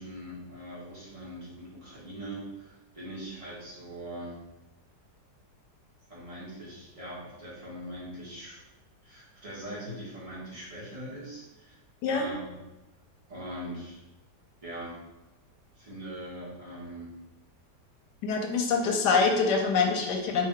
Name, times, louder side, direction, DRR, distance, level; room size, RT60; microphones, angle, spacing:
voice 1, 0.0-4.4 6.1-8.6 9.0-11.8 12.1-12.5 13.3-14.0 14.6-15.0 15.7-17.1, right 1 dB, 20° right, -8 dB, 1.1 m, -41 dB
voice 2, 18.2-20.5, left 4 dB, 75° left, 2 dB, 1.1 m, -25 dB
3.3 x 2.7 x 3.5 m, 1.0 s
omnidirectional pair, 1.9 m